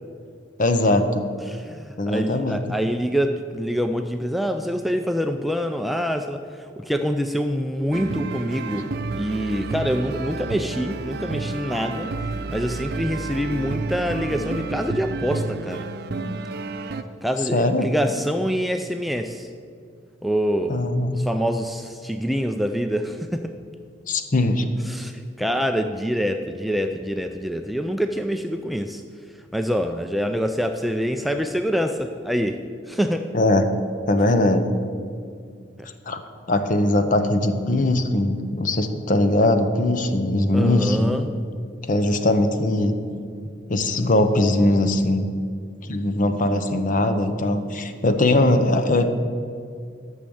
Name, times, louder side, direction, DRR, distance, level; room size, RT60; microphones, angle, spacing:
voice 1, 0.6-1.3 2.0-2.6 17.5-17.9 20.7-21.2 24.1-24.7 33.3-33.7 34.1-34.8 36.1-36.2 36.5-41.2 41.9-43.0 43.7-45.3 45.8-49.1, left 1 dB, 45° left, 8 dB, 0.7 m, -20 dB
voice 2, 1.5-6.4 6.8-8.9 9.1-12.1 12.5-15.9 17.2-19.5 20.2-23.5 24.8-29.0 29.5-32.6 32.9-33.3 40.5-41.3, equal, ahead, 6 dB, 0.3 m, -25 dB
sound 1, 7.9-17.0, right 3 dB, 60° right, 0.5 m, -30 dB
10.5 x 6.4 x 7.0 m, 2.2 s
head